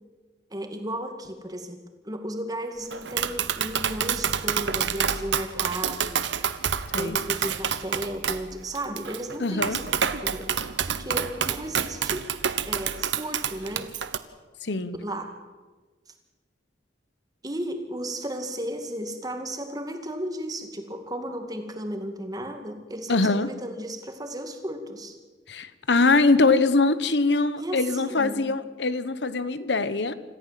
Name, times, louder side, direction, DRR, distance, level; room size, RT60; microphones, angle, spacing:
voice 1, 0.5-1.8 2.0-6.3 6.9-9.9 10.2-10.6 10.9-12.3 12.7-13.9 15.0-15.3 17.4-25.2 27.6-28.5, right 1 dB, 20° right, 5 dB, 2.2 m, -34 dB
Tap, 2.9-14.2, right 7 dB, 80° right, 1.1 m, -28 dB
voice 2, 9.4-9.8 14.6-15.0 23.1-23.5 25.5-30.1, left 3 dB, 75° left, 14 dB, 1.1 m, -23 dB
27.0 x 14.5 x 7.6 m, 1.3 s
head